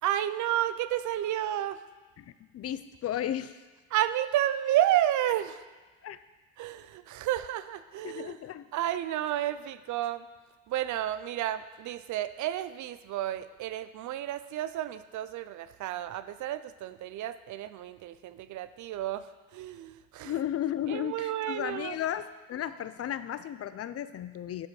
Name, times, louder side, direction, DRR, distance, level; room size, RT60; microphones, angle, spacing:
voice 1, 0.0-1.8 3.9-5.6 6.6-8.4 8.7-10.3 10.7-20.3 20.9-22.0, right 12 dB, 75° right, 13 dB, 0.5 m, -31 dB
voice 2, 2.2-3.6 6.0-6.2 8.0-8.7 20.2-24.7, left 11 dB, 50° left, 13 dB, 0.5 m, -34 dB
11.5 x 5.1 x 4.8 m, 1.3 s
cardioid pair, 90°, 30 cm